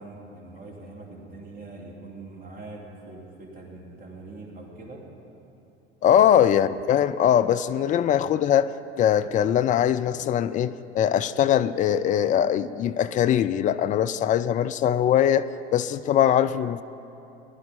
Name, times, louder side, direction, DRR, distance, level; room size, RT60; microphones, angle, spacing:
voice 1, 0.0-5.0 6.1-6.2, right 2 dB, 25° right, -1 dB, 2.8 m, -43 dB
voice 2, 6.0-8.7 9.0-16.8, left 10 dB, 25° left, 13 dB, 0.3 m, -21 dB
20.0 x 11.0 x 4.2 m, 2.9 s
figure-of-eight pair, 80°, 34 cm